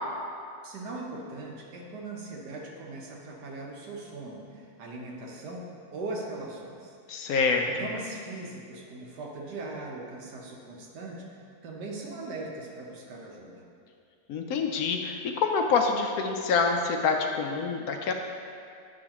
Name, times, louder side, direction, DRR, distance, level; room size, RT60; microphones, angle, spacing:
voice 1, 0.6-5.6 5.9-6.9 7.7-11.2 11.6-13.6, right 2 dB, 85° right, -1 dB, 1.5 m, -39 dB
voice 2, 7.1-7.7 14.3-18.1, left 5 dB, 70° left, 4 dB, 1.0 m, -26 dB
8.8 x 6.3 x 2.9 m, 2.4 s
omnidirectional pair, 1.7 m